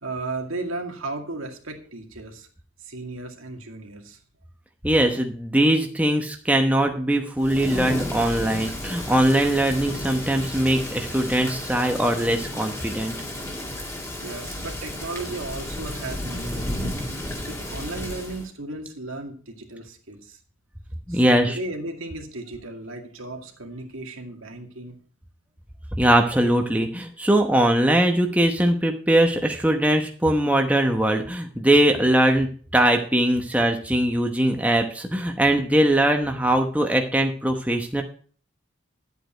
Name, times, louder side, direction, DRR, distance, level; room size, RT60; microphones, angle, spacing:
voice 1, 0.0-2.5 2.8-4.2 14.2-17.1 17.5-20.4 21.1-25.0, right 2 dB, 75° right, 3 dB, 2.1 m, -35 dB
voice 2, 4.8-13.2 21.1-21.6 26.0-38.0, right 1 dB, 5° right, 3 dB, 1.0 m, -21 dB
Thunder / Rain, 7.4-18.5, left 1 dB, 15° left, 2.0 m, -33 dB
11.5 x 8.2 x 4.4 m, 0.43 s
head